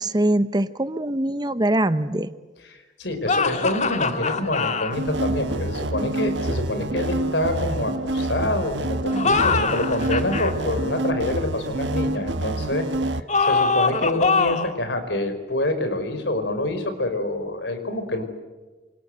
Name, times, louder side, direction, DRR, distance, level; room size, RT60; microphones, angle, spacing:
voice 1, 0.0-2.3, right 1 dB, 20° right, 13 dB, 0.9 m, -22 dB
voice 2, 2.6-12.9 13.1-18.2, left 1 dB, 65° left, 8 dB, 4.9 m, -26 dB
sound 1, 3.3-5.0 9.1-10.5 13.3-14.8, left 4 dB, 40° left, 1.8 m, -23 dB
sound 2, 4.9-13.2, right 2 dB, 75° right, 1.4 m, -27 dB
27.5 x 26.0 x 8.0 m, 1.3 s
head